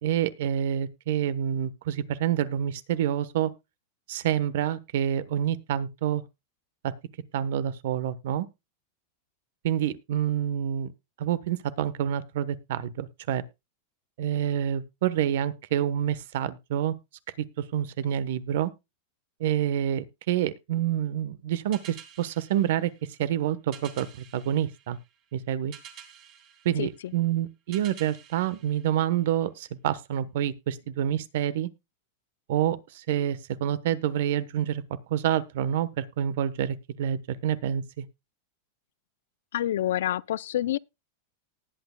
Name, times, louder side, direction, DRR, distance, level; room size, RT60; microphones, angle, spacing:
voice 1, 0.0-3.5 4.1-6.2 6.8-6.9 7.3-8.5 9.6-10.9 11.2-13.4 14.2-16.9 17.4-17.5 17.7-18.7 19.4-22.9 23.2-24.1 24.3-25.0 25.3-25.7 26.6-31.7 32.5-34.8 35.1-38.0, right 10 dB, 65° right, 1.1 m, -27 dB
sound 1, 21.7-29.6, right 8 dB, 35° right, 2.4 m, -50 dB
voice 2, 39.5-40.8, left 12 dB, 80° left, 0.4 m, -27 dB
19.0 x 8.5 x 2.3 m
supercardioid pair, 160°, 0 cm